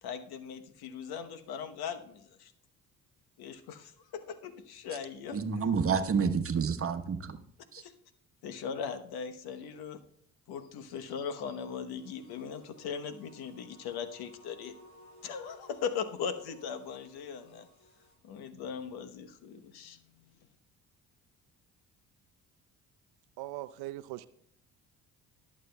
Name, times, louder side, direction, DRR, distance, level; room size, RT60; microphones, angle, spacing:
voice 1, 0.0-2.5 3.4-5.4 7.8-7.9 8.4-10.0 10.5-14.7 15.2-17.7 18.2-20.0, left 7 dB, 65° left, 9 dB, 1.1 m, -39 dB
voice 2, 5.3-7.4 7.7-7.8, right 6 dB, 35° right, 9 dB, 1.2 m, -29 dB
sound 1, 11.9-18.1, equal, 45° left, 5.1 m, -58 dB
voice 3, 23.4-24.3, right 17 dB, 70° right, 15 dB, 0.6 m, -40 dB
21.0 x 7.5 x 2.3 m, 0.68 s
hypercardioid pair, 55°, 40 cm